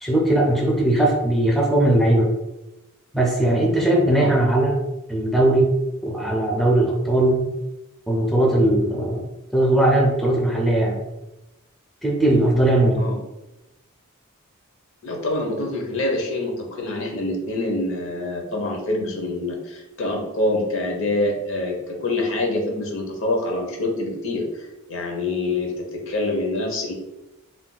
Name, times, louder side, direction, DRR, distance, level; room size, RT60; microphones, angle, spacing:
voice 1, 0.0-2.3 3.1-4.8 5.1-5.7 6.0-7.5 8.1-9.2 9.5-11.0 12.0-13.0, right 1 dB, ahead, -2 dB, 0.4 m, -19 dB
voice 2, 15.0-26.9, left 2 dB, 65° left, 2 dB, 0.7 m, -26 dB
2.5 x 2.2 x 3.8 m, 0.95 s
head